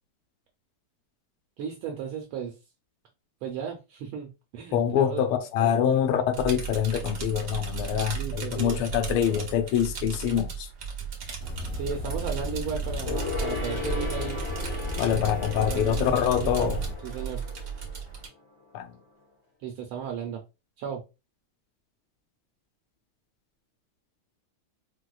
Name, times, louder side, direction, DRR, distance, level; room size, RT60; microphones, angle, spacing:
voice 1, 1.6-2.5 3.4-5.2 5.6-6.0 8.1-8.8 9.1-9.4 11.7-14.4 15.1-15.2 15.6-16.1 16.4-16.7 17.0-17.4 19.6-20.4 20.8-21.0, right 7 dB, 75° right, 1.4 m, -35 dB
voice 2, 4.7-10.7 15.0-16.8 18.7-18.9, left 9 dB, 80° left, 1.4 m, -25 dB
sound 1, 6.3-18.3, right 7 dB, 55° right, 0.9 m, -35 dB
sound 2, 11.4-16.9, left 3 dB, 30° left, 0.9 m, -35 dB
Gong, 13.0-18.9 19.2-19.3, left 4 dB, 55° left, 1.7 m, -37 dB
4.7 x 2.2 x 2.3 m
omnidirectional pair, 2.4 m